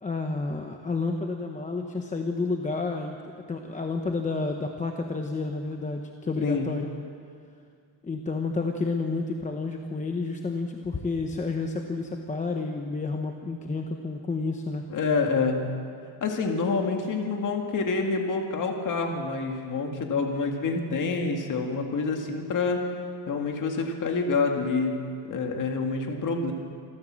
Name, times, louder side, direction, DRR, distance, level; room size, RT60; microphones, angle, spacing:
voice 1, 0.0-6.9 8.0-14.8, left 3 dB, 15° left, 3 dB, 0.9 m, -30 dB
voice 2, 14.9-15.6 16.2-22.8 23.3-25.0 25.3-26.5, left 4 dB, 40° left, 2 dB, 2.1 m, -27 dB
26.5 x 14.0 x 7.5 m, 2.2 s
cardioid pair, 175°, 48 cm